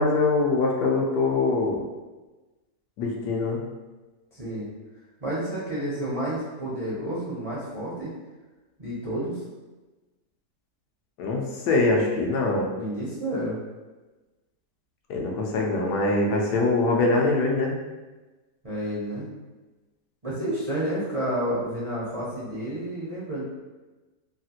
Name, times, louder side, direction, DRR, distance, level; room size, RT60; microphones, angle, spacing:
voice 1, 0.0-1.8 3.0-3.6 11.2-12.7 15.1-17.7, left 3 dB, 80° left, 0 dB, 1.2 m, -23 dB
voice 2, 4.3-4.7 5.2-8.1 8.8-9.4 12.8-13.6 18.6-19.3 20.2-23.4, right 1 dB, 50° right, -9 dB, 0.4 m, -30 dB
3.2 x 2.4 x 2.8 m, 1.2 s
omnidirectional pair, 1.8 m